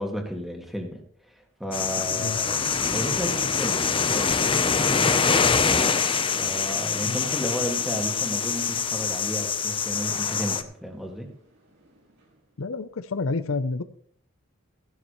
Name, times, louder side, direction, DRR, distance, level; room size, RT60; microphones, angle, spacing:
voice 1, 0.0-5.5 6.3-11.3, equal, ahead, 3 dB, 1.9 m, -33 dB
sound 1, 1.7-10.6, left 6 dB, 25° left, 0.7 m, -24 dB
Thunder / Rain, 2.2-12.6, right 1 dB, 65° right, 4.6 m, -51 dB
voice 2, 12.6-13.8, left 3 dB, 80° left, 12 dB, 0.7 m, -29 dB
15.0 x 11.5 x 3.1 m, 0.63 s
head